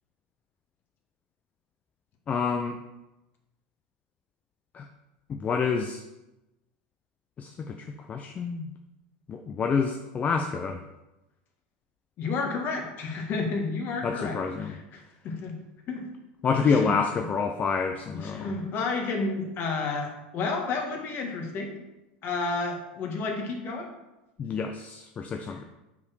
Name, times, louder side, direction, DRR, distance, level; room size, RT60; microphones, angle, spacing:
voice 1, 2.3-2.8 4.7-4.8 5.3-6.0 7.4-7.8 8.1-8.7 9.3-10.8 14.0-14.7 16.4-18.5 24.4-25.6, left 5 dB, 30° left, 5 dB, 0.6 m, -28 dB
voice 2, 12.2-15.5 15.9-16.1 16.6-16.9 18.1-21.7 22.2-23.9 25.4-25.6, left 4 dB, 45° left, 2 dB, 1.8 m, -31 dB
5.8 x 4.9 x 6.1 m, 0.98 s
supercardioid pair, 110°, 5 cm